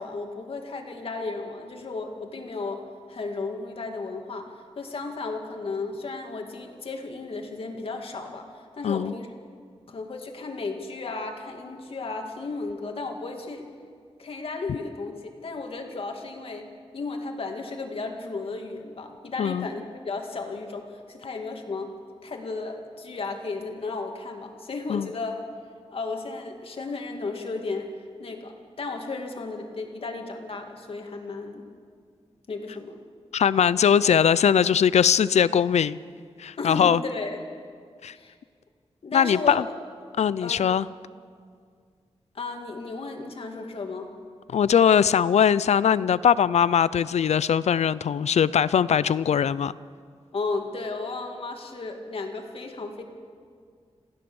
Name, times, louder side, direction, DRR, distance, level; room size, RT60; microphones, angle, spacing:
voice 1, 0.0-2.8 3.1-9.3 9.9-13.7 14.2-16.7 16.9-21.9 22.2-25.4 25.9-27.9 28.2-31.7 32.5-33.0 36.6-37.4 38.1-38.4 39.0-39.7 40.4-40.6 42.3-44.1 50.3-53.0, left 3 dB, 60° left, 3 dB, 2.4 m, -34 dB
voice 2, 8.8-9.1 19.4-19.7 24.9-25.1 33.3-36.0 36.4-37.0 38.0-38.1 39.1-39.6 40.2-40.9 44.5-49.7, left 8 dB, 85° left, 17 dB, 0.5 m, -21 dB
27.0 x 15.5 x 7.1 m, 2.1 s
wide cardioid pair, 160°, 11 cm